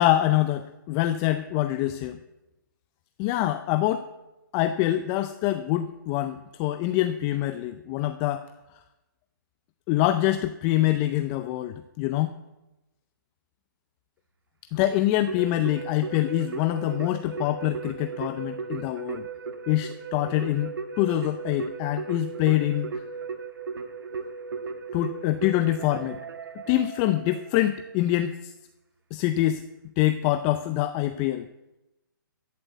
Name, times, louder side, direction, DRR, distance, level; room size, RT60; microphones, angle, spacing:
voice 1, 0.0-2.2 3.2-4.1 4.5-8.5 9.9-12.4 14.7-19.3 19.7-20.7 21.0-22.9 24.9-26.2 26.7-28.5 29.1-29.6 30.0-31.4, left 14 dB, 25° left, 10 dB, 0.5 m, -25 dB
Keyboard (musical), 15.3-27.7, right 5 dB, 80° right, 1.5 m, -36 dB
14.5 x 7.6 x 8.0 m, 0.98 s
hypercardioid pair, 150°, 12 cm